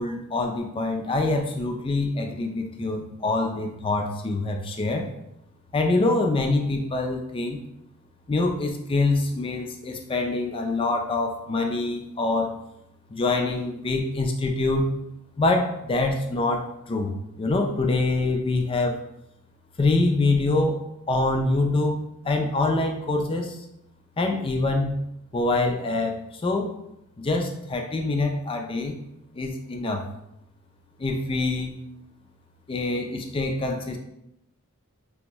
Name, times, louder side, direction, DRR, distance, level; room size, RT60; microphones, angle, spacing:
voice 1, 0.0-5.1 5.7-7.6 8.3-12.5 13.1-14.9 15.4-19.0 19.8-20.8 21.1-23.6 24.2-25.0 25.3-26.7 27.2-29.0 29.3-30.0 31.0-31.8 32.7-34.0, left 2 dB, 25° left, 3 dB, 0.4 m, -25 dB
3.4 x 2.6 x 3.0 m, 0.82 s
head